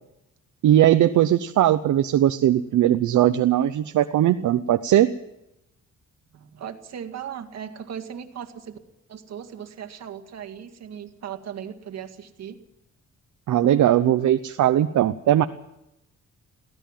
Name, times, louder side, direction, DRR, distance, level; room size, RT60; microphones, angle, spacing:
voice 1, 0.6-5.1 13.5-15.4, right 12 dB, 80° right, 9 dB, 0.8 m, -19 dB
voice 2, 6.3-8.8 9.1-12.6, right 9 dB, 60° right, 7 dB, 2.0 m, -37 dB
23.0 x 16.5 x 7.4 m, 0.85 s
wide cardioid pair, 180°, 29 cm